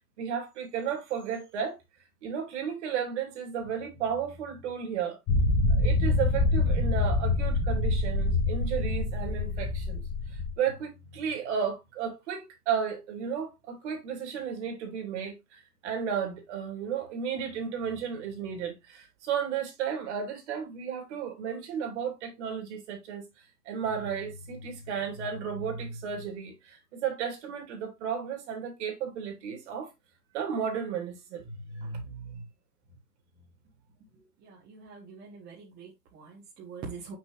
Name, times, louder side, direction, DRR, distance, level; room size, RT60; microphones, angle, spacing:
voice 1, 0.2-1.8 2.2-5.2 5.7-10.0 10.3-23.3 23.6-29.9 30.3-32.4, right 7 dB, 45° right, 2.8 m, -33 dB
sound 1, 5.3-10.5, left 2 dB, 25° left, 1.7 m, -26 dB
voice 2, 34.4-37.1, right 5 dB, 20° right, 1.6 m, -44 dB
6.0 x 6.0 x 3.0 m
hypercardioid pair, 150°, 49 cm